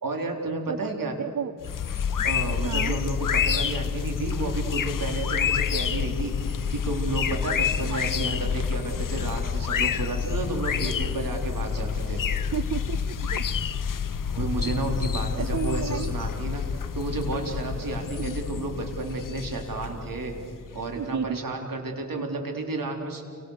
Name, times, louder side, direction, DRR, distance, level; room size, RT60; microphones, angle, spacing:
voice 1, 0.0-1.2 2.2-12.2 14.3-20.3 20.7-23.2, right 2 dB, 75° right, 2 dB, 4.2 m, -31 dB
voice 2, 1.2-1.5 2.6-3.0 7.8-8.0 12.5-13.4 15.4-16.1 18.2-18.4 21.0-21.4 22.1-22.2, right 7 dB, 60° right, 13 dB, 0.8 m, -32 dB
sound 1, 1.6-21.0, left 7 dB, 70° left, 0.9 m, -28 dB
30.0 x 25.5 x 6.7 m, 2.5 s
wide cardioid pair, 75°, 34 cm